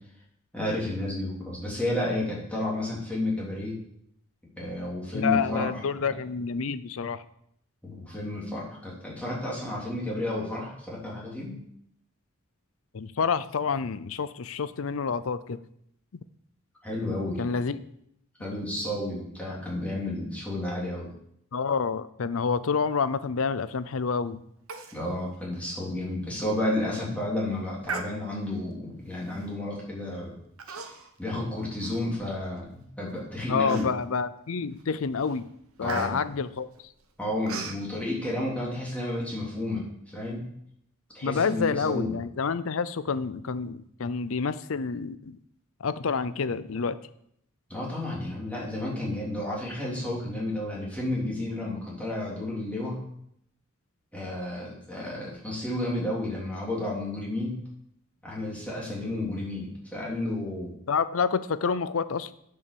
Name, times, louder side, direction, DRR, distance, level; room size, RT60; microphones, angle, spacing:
voice 1, 0.5-3.8 4.6-5.8 7.8-11.6 16.8-17.5 18.4-21.1 24.9-30.3 30.7-30.8 31.2-33.9 35.8-36.2 37.2-40.4 41.1-42.2 47.7-53.0 54.1-57.5 58.2-60.7, left 1 dB, 5° left, -5 dB, 3.2 m, -31 dB
voice 2, 5.1-7.2 12.9-15.6 17.4-17.8 21.5-24.4 33.5-35.5 35.8-36.7 41.2-45.4 45.8-47.0 60.9-62.3, left 5 dB, 70° left, 15 dB, 0.6 m, -28 dB
Human voice, 24.7-25.0 25.3-25.4 25.9-26.1 26.6-26.9 27.8-28.6 29.3-29.6 30.6-31.2 31.6-32.6 33.1-33.2 33.7-34.2 34.7-34.9 35.2-37.8, right 5 dB, 85° right, 1.2 m, -39 dB
9.5 x 5.7 x 6.9 m, 0.72 s
head